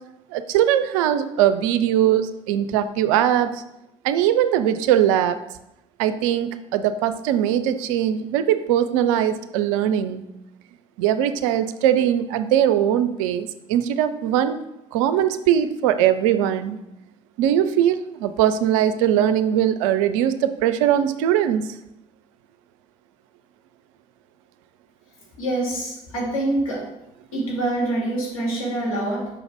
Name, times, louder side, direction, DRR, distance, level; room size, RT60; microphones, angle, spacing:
voice 1, 0.3-3.6 4.0-5.4 6.0-10.2 11.0-14.6 14.9-16.8 17.4-21.7, right 10 dB, 70° right, 11 dB, 0.4 m, -20 dB
voice 2, 25.4-26.9 27.3-29.3, right 1 dB, 80° left, -4 dB, 2.0 m, -25 dB
5.8 x 3.9 x 4.6 m, 0.88 s
figure-of-eight pair, 50°, 17 cm